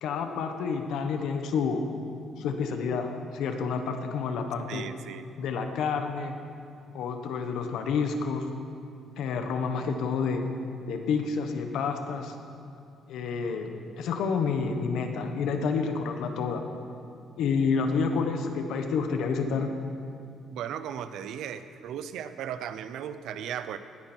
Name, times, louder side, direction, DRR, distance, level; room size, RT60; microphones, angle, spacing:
voice 1, 0.0-1.9 2.4-4.8 5.4-6.4 6.9-8.5 9.2-10.5 10.9-12.3 13.1-16.6 17.4-19.7, left 5 dB, 75° left, 5 dB, 1.3 m, -29 dB
voice 2, 4.7-5.3 20.5-23.8, right 9 dB, 70° right, 12 dB, 0.6 m, -36 dB
18.5 x 9.7 x 4.5 m, 2.5 s
cardioid pair, 160°, 0 cm